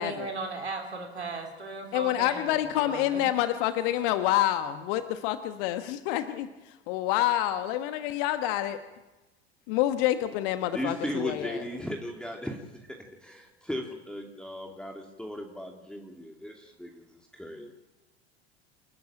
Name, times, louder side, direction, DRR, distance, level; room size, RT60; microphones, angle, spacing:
voice 1, 0.0-3.2, right 3 dB, 85° right, 2 dB, 3.4 m, -37 dB
voice 2, 1.9-6.5 6.9-8.8 9.7-11.7, left 13 dB, 55° left, 9 dB, 1.4 m, -27 dB
voice 3, 10.7-12.6 13.2-17.0 17.3-17.7, equal, 5° left, 1 dB, 2.6 m, -36 dB
28.5 x 13.0 x 9.0 m, 1.1 s
figure-of-eight pair, 80°, 32 cm